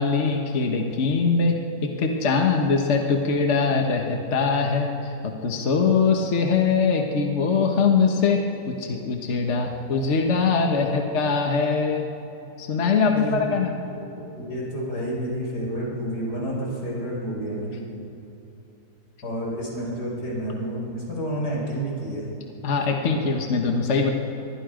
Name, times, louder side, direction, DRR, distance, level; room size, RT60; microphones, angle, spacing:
voice 1, 0.0-1.5 1.8-12.0 12.6-13.8 22.6-24.1, left 5 dB, 50° left, 2 dB, 1.6 m, -22 dB
voice 2, 13.0-13.4 13.9-17.8 19.2-22.3, right 1 dB, 90° left, -3 dB, 5.8 m, -30 dB
24.0 x 21.0 x 5.1 m, 2.8 s
omnidirectional pair, 1.7 m